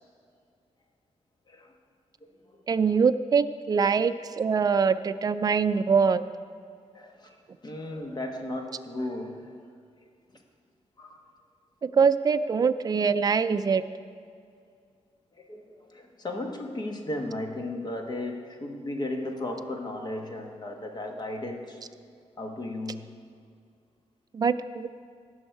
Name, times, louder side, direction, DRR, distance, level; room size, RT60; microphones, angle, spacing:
voice 1, 2.7-6.2 11.8-13.8 24.3-24.9, right 5 dB, 35° right, 11 dB, 0.3 m, -23 dB
voice 2, 6.9-7.4 7.6-9.5 11.0-11.2 15.4-21.8 22.4-23.0, left 1 dB, 35° left, 3 dB, 1.2 m, -35 dB
18.0 x 6.3 x 4.6 m, 2.3 s
wide cardioid pair, 170°, 12 cm